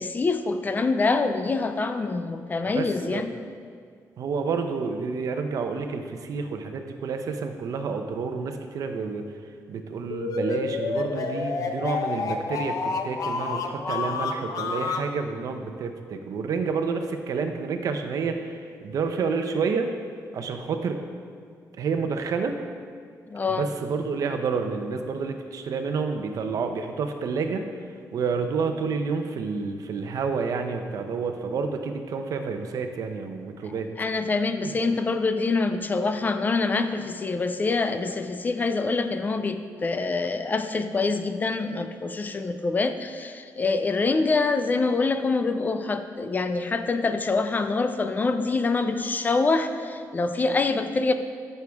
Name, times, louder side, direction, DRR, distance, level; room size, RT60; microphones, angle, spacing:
voice 1, 0.0-3.3 23.3-23.7 34.0-51.1, left 3 dB, 25° left, 8 dB, 0.4 m, -25 dB
voice 2, 2.7-3.2 4.2-9.3 9.7-19.9 20.3-21.0 21.8-22.6 23.5-27.7 28.1-33.9 34.6-34.7, right 5 dB, 60° right, 6 dB, 0.8 m, -29 dB
sound 1, 10.1-15.1, left 4 dB, 60° left, 0.7 m, -29 dB
14.0 x 6.7 x 3.6 m, 2.1 s
wide cardioid pair, 150°, 7 cm